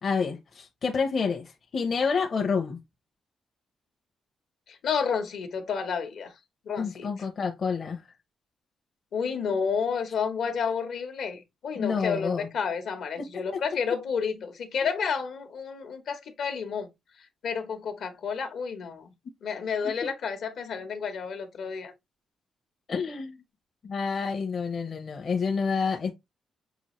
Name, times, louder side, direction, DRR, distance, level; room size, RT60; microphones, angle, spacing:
voice 1, 0.0-2.8 6.8-8.0 11.8-12.5 13.2-13.3 13.5-13.6 22.9-23.4 23.8-26.1, left 5 dB, 45° left, 0.7 m, -28 dB
voice 2, 4.7-6.3 6.6-7.1 9.1-16.9 17.4-19.1 19.4-21.9, left 6 dB, 70° left, 1.0 m, -30 dB
6.0 x 2.5 x 3.0 m
cardioid pair, 120°, 0 cm